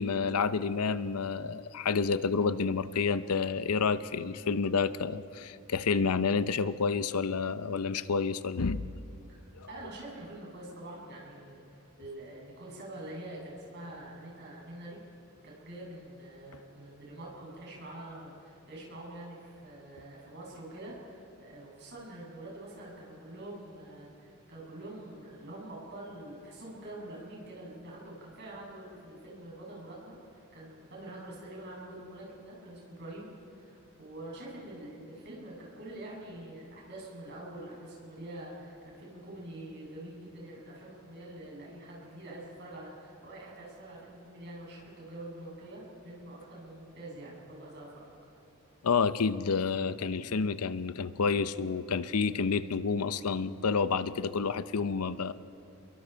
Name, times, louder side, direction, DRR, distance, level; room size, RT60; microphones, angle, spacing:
voice 1, 0.0-8.9 9.5-9.7 48.8-55.3, left 5 dB, 85° left, 14 dB, 0.7 m, -29 dB
voice 2, 9.7-15.0 15.4-48.0, right 1 dB, 50° right, -4 dB, 7.4 m, -45 dB
29.0 x 22.5 x 4.5 m, 2.7 s
head